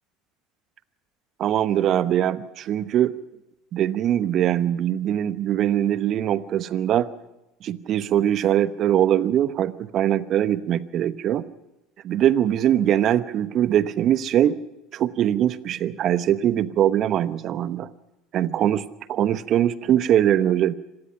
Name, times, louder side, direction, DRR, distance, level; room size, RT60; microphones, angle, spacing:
voice 1, 1.4-3.1 3.7-7.1 7.6-11.4 12.0-14.6 14.9-17.9 18.3-20.7, right 11 dB, 50° right, 15 dB, 1.0 m, -22 dB
26.0 x 19.0 x 5.8 m, 0.95 s
hypercardioid pair, 70°, 0 cm